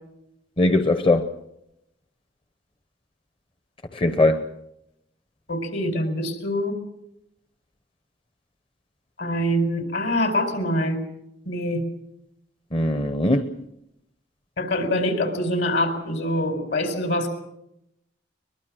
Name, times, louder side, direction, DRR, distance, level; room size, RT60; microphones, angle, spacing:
voice 1, 0.6-1.3 3.9-4.5 12.7-13.5, left 2 dB, 30° left, 0.8 m, -20 dB
voice 2, 5.5-6.8 9.2-11.0 11.5-11.9 14.6-17.3, left 1 dB, 70° left, 4.5 m, -24 dB
22.0 x 22.0 x 6.3 m
head